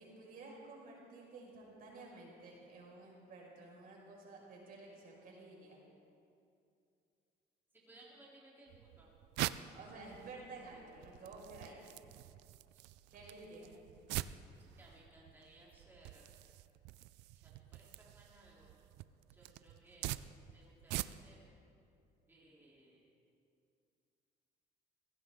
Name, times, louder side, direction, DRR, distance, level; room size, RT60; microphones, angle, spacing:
voice 1, 0.0-5.8 9.7-11.8 13.1-13.8, right 3 dB, 60° right, -2 dB, 5.3 m, -52 dB
voice 2, 7.8-9.1 14.8-16.3 17.4-18.7 19.3-21.5 22.3-23.1, right 1 dB, 10° right, -6 dB, 3.4 m, -62 dB
sound 1, 8.7-21.5, right 16 dB, 90° right, 0.4 m, -45 dB
22.5 x 17.0 x 3.7 m, 2.5 s
cardioid pair, 110°, 17 cm